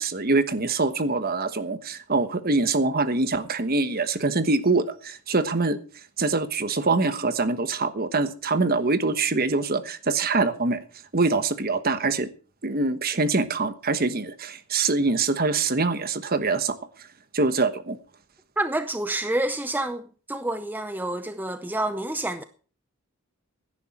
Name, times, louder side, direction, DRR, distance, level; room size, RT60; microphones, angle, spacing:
voice 1, 0.0-5.8 6.2-10.8 11.1-12.3 12.6-16.8 17.3-18.0, right 3 dB, 40° right, 1.2 m, -24 dB
voice 2, 18.6-22.4, right 1 dB, 10° right, 0.6 m, -28 dB
16.5 x 10.5 x 4.3 m
head